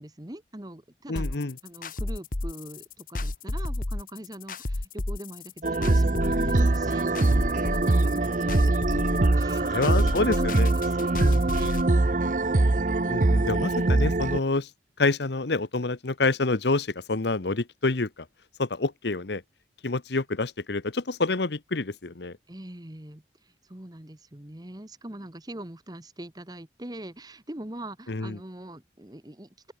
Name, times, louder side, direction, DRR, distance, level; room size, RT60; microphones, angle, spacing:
voice 1, 0.0-8.8 9.3-10.5 10.8-11.7 22.5-23.2 23.7-29.7, right 1 dB, 20° right, 1.3 m, -42 dB
voice 2, 1.1-1.6 9.6-10.7 11.2-11.5 13.1-14.7 15.0-18.1 18.6-19.4 19.8-22.4 28.1-28.4, left 3 dB, 70° left, 1.0 m, -27 dB
sound 1, 1.2-11.8, left 2 dB, 50° left, 1.2 m, -31 dB
sound 2, 5.6-14.4, right 2 dB, 45° right, 0.7 m, -23 dB
open air
head